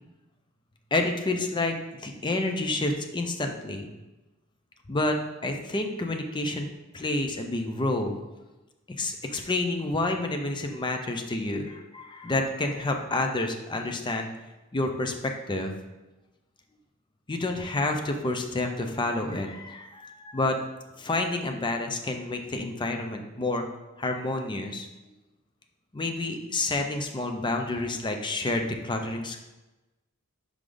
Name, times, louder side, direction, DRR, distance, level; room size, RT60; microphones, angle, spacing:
voice 1, 0.9-1.8 2.0-3.9 4.9-5.2 5.4-6.7 6.9-8.2 9.0-14.3 14.7-15.1 15.5-15.7 17.3-20.7 21.0-23.6 24.0-24.9 25.9-29.4, left 2 dB, 20° left, 4 dB, 0.5 m, -29 dB
4.9 x 4.9 x 3.9 m, 1.1 s
head